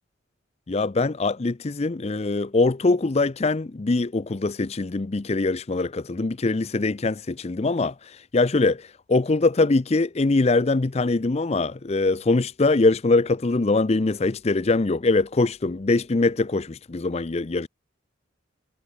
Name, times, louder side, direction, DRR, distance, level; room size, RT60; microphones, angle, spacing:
voice 1, 0.7-17.7, left 3 dB, 30° left, 0.5 m, -23 dB
head